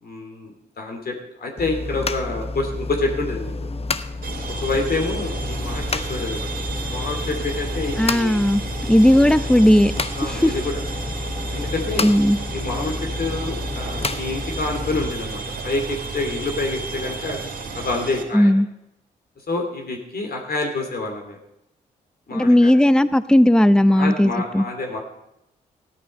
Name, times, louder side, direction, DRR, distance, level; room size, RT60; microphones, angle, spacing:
voice 1, 0.0-3.5 4.4-6.5 6.8-8.4 9.1-9.3 10.1-10.7 11.5-12.1 12.5-17.4 17.7-18.5 19.5-21.4 22.3-22.7 23.8-25.0, left 3 dB, 60° left, 2 dB, 2.8 m, -27 dB
sound 1, 1.6-15.1, left 3 dB, 35° left, 0.9 m, -30 dB
sound 2, 4.2-18.2, right 3 dB, 55° right, 2.8 m, -32 dB
voice 2, 8.0-8.6 8.9-9.9 10.2-10.6 12.0-12.4 18.3-18.7 22.3-24.6, left 1 dB, 5° left, 14 dB, 0.7 m, -16 dB
sound 3, 12.0-12.5 13.6-14.2 15.6-16.2 17.3-18.0, right 7 dB, 80° right, 1.8 m, -42 dB
14.5 x 11.5 x 5.4 m, 0.85 s
supercardioid pair, 45°, 18 cm